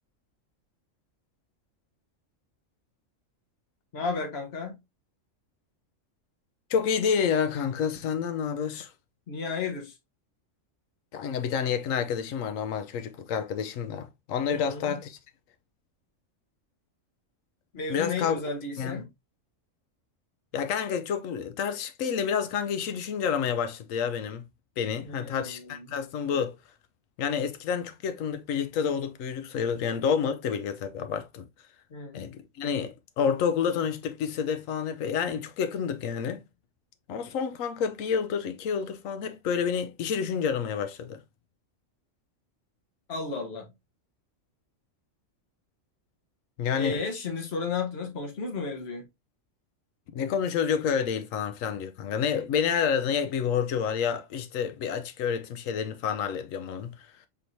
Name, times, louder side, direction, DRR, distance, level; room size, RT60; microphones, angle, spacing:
voice 1, 3.9-4.8 9.3-10.0 14.5-15.0 17.7-19.1 25.0-25.9 31.9-32.3 43.1-43.7 46.8-49.1, left 4 dB, 55° left, 1.3 m, -33 dB
voice 2, 6.7-8.9 11.1-15.2 17.9-18.4 18.8-19.0 20.5-24.4 24.8-26.6 27.2-31.5 32.1-36.4 37.1-41.2 46.6-47.0 50.1-56.9, left 7 dB, 85° left, 1.0 m, -29 dB
4.5 x 3.6 x 2.6 m
omnidirectional pair, 1.3 m